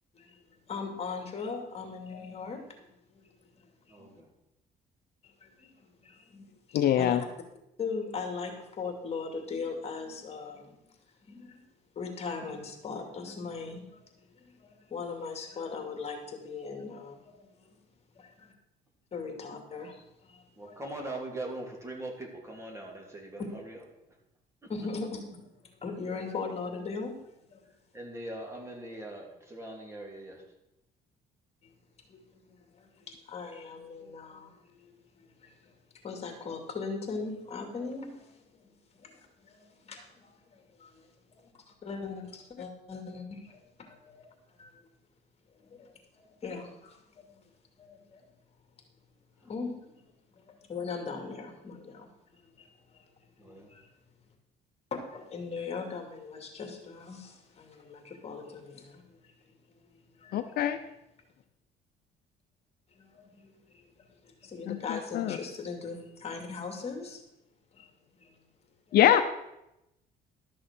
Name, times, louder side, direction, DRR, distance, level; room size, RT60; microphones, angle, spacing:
voice 1, 0.7-2.9 3.1-3.3 3.6-3.7 3.9-4.2 5.4-7.2 7.8-10.9 11.3-11.6 12.0-14.0 14.3-17.8 18.2-18.5 19.1-20.8 24.7-27.2 27.5-27.6 32.1-35.7 36.0-38.7 39.0-41.1 41.4-41.5 41.8-44.3 44.6-44.7 45.6-45.9 46.2-47.4 47.8-48.2 49.4-52.7 52.9-53.1 53.4-53.9 54.9-59.3 59.9-60.4 63.0-63.8 64.2-67.2 67.7-67.9 68.2-68.3 68.9-69.0, left 4 dB, 40° left, 4 dB, 2.4 m, -40 dB
voice 2, 3.9-4.3 20.6-23.8 24.6-24.7 27.9-30.4 53.4-53.7, right 1 dB, 15° right, 1 dB, 2.9 m, -41 dB
voice 3, 6.7-7.2 60.3-60.8 64.7-65.4 68.9-69.2, left 11 dB, 65° left, 9 dB, 0.7 m, -24 dB
12.5 x 6.3 x 6.1 m, 0.86 s
cardioid pair, 110°, 17 cm